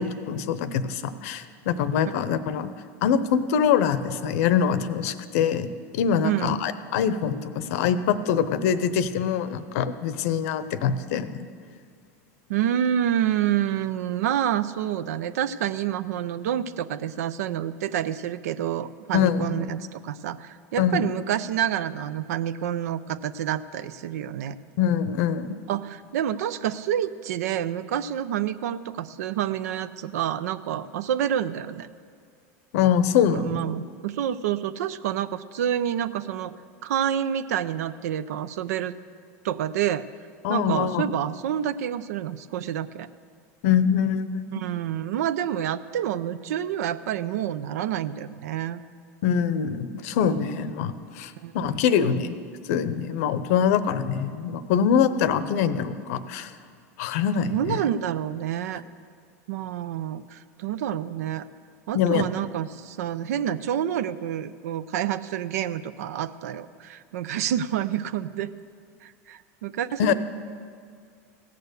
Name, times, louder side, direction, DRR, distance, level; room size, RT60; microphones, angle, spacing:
voice 1, 0.0-2.7 3.0-5.7 5.9-11.5 19.1-19.6 20.8-21.0 24.8-25.6 32.7-33.6 40.4-41.0 43.6-44.6 49.2-52.3 52.7-56.5 57.0-57.8 61.9-62.2 70.0-70.1, left 8 dB, 70° left, 13 dB, 0.7 m, -24 dB
voice 2, 6.2-6.6 12.5-24.6 25.7-31.9 33.3-36.6 36.8-38.9 39.4-40.1 40.5-43.1 44.5-48.8 51.4-51.5 57.4-58.8 59.5-61.5 61.9-68.5 69.0-70.1, right 10 dB, 85° right, 15 dB, 0.5 m, -28 dB
16.5 x 6.8 x 6.6 m, 2.2 s
supercardioid pair, 125°, 8 cm